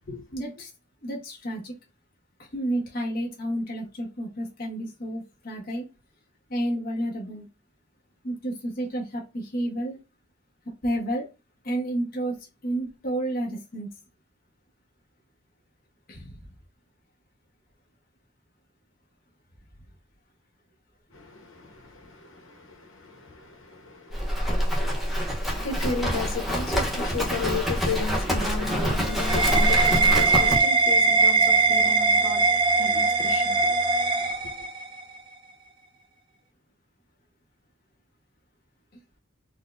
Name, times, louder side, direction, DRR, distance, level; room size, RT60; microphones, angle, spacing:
voice 1, 0.3-0.7 1.0-1.8 2.4-5.9 6.5-7.5 8.2-10.0 10.8-11.3 11.6-13.9 16.1-16.4, right 1 dB, 45° left, 0.9 m, -30 dB
voice 2, 21.1-33.8 34.4-34.5, left 4 dB, 90° left, 0.9 m, -35 dB
Livestock farm animals working animals, 24.1-30.6, equal, ahead, 0.7 m, -26 dB
sound 1, 28.5-35.0, right 4 dB, 25° right, 0.4 m, -21 dB
4.2 x 2.1 x 2.4 m
head